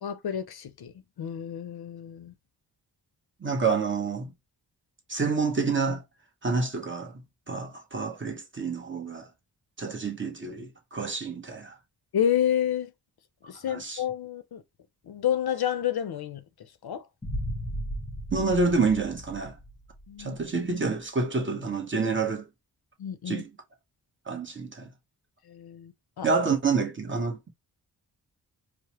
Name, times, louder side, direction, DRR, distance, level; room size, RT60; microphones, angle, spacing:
voice 1, 0.0-0.9 1.2-2.3 12.1-12.9 13.5-14.6 15.1-16.4 16.8-17.0 20.1-20.4 23.0-23.4 25.5-26.3, left 10 dB, 65° left, 0.6 m, -29 dB
voice 2, 3.4-4.3 5.1-6.0 6.4-7.2 7.5-9.3 9.8-11.7 13.7-14.0 18.3-19.5 20.2-22.4 23.3-23.5 24.3-24.9 26.2-27.5, right 4 dB, 30° right, 0.9 m, -28 dB
sound 1, 17.2-20.2, equal, 15° left, 0.8 m, -35 dB
4.8 x 2.0 x 2.9 m
wide cardioid pair, 145°, 41 cm